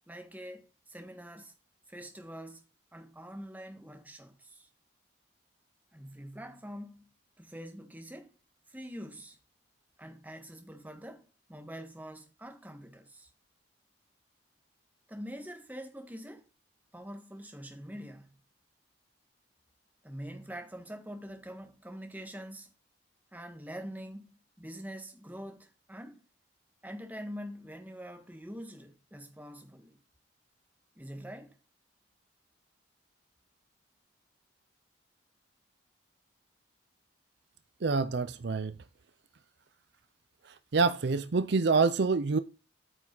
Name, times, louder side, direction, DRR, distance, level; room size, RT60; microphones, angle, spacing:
voice 1, 0.1-1.5 1.9-2.6 2.9-4.7 5.9-7.1 7.4-8.3 8.7-9.4 10.0-13.3 15.1-16.5 16.9-18.3 20.0-22.7 23.3-24.3 24.6-26.2 26.8-30.0 31.0-31.6, equal, 10° right, 1.4 m, -45 dB
voice 2, 37.8-38.7 40.7-42.4, right 4 dB, 60° right, 0.5 m, -26 dB
8.9 x 6.0 x 3.9 m
head